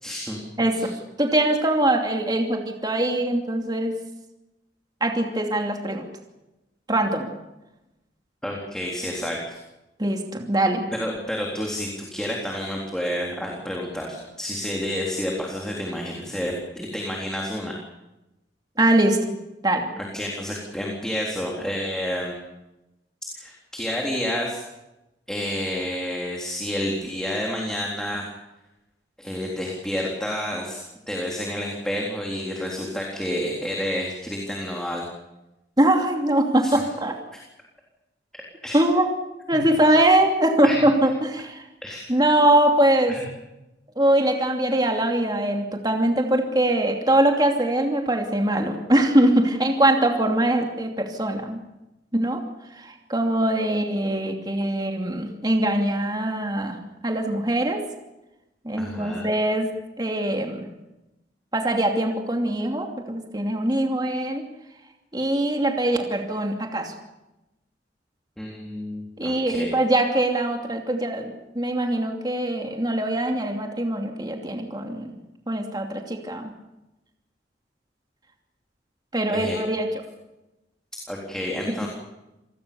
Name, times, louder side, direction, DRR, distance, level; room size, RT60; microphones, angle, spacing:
voice 1, 0.0-0.4 0.7-0.9 8.4-9.6 10.9-17.7 20.0-22.3 23.4-24.6 25.3-28.3 29.2-30.8 31.1-35.0 36.6-36.7 38.6-38.8 39.5-39.6 40.6-40.8 41.8-42.0 43.1-43.2 58.8-59.3 68.4-69.7 79.3-79.6 81.1-81.9, equal, 5° left, -1 dB, 3.7 m, -29 dB
voice 2, 0.6-4.0 5.0-6.1 6.9-7.3 10.0-10.8 18.8-19.2 19.6-19.9 35.8-37.1 38.7-39.1 39.5-41.7 42.1-43.2 44.0-51.6 52.1-52.4 52.7-56.8 57.0-57.8 58.6-59.7 60.0-60.7 61.5-64.4 65.1-66.9 69.2-75.2 75.5-76.5 79.1-80.0 81.7-81.8, right 1 dB, 25° right, 3 dB, 2.7 m, -22 dB
27.5 x 19.5 x 7.0 m, 0.96 s
head